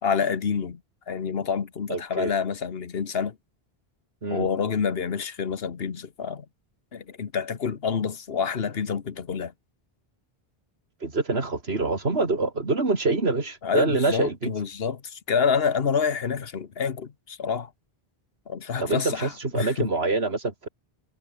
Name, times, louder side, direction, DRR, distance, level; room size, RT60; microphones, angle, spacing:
voice 1, 0.0-0.8 1.1-3.4 4.3-6.5 6.9-9.5 13.6-17.7 18.5-19.9, left 6 dB, 70° left, 1.4 m, -28 dB
voice 2, 1.9-2.3 4.2-4.5 11.0-14.5 18.8-20.7, right 3 dB, 85° right, 3.1 m, -25 dB
omnidirectional pair, 1.0 m